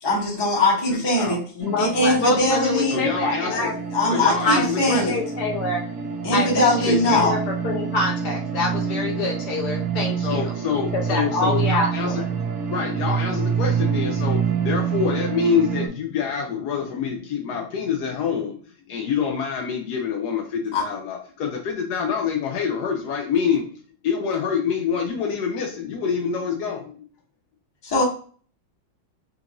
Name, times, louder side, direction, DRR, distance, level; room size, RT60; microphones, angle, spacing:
voice 1, 0.0-1.4 1.8-3.0 3.5-3.6 3.9-5.1 6.2-7.3 20.7-20.8 27.8-28.0, left 1 dB, 15° left, -4 dB, 0.8 m, -21 dB
voice 2, 1.6-3.7 4.2-5.8 6.3-10.5 10.9-12.2, left 2 dB, 55° left, 0 dB, 1.3 m, -26 dB
sound 1, 1.6-15.9, right 6 dB, 60° right, 1.2 m, -27 dB
voice 3, 2.9-3.7 4.1-5.1 6.6-7.3 10.2-12.2 12.7-18.6 18.9-23.8 24.0-27.0, left 6 dB, 85° left, 2 dB, 0.8 m, -26 dB
4.4 x 2.5 x 2.9 m, 0.43 s
omnidirectional pair, 2.4 m